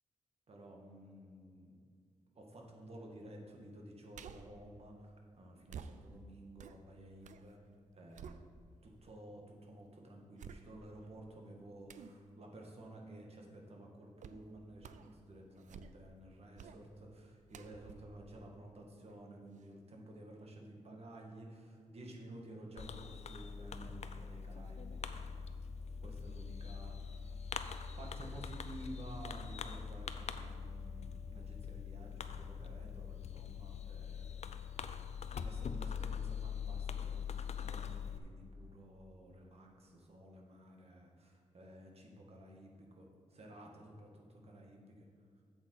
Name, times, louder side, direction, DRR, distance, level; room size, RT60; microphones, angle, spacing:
voice 1, 0.5-1.8 2.3-7.6 7.9-8.5 8.8-25.4 26.0-27.5 28.0-34.7 35.4-45.0, right 1 dB, 50° right, 0 dB, 1.7 m, -53 dB
sound 1, 4.1-4.6 5.7-7.5 7.8-8.9 9.5-9.6 10.4-11.1 11.9-12.2 14.2-14.5 14.8-15.2 15.5-16.2 16.6-16.8 17.5-19.2 19.6-19.7, right 6 dB, 75° right, 0.4 m, -52 dB
Fireworks, 22.8-38.2, left 6 dB, 60° left, 0.5 m, -43 dB
7.8 x 7.7 x 4.5 m, 2.2 s
cardioid pair, 80°, 13 cm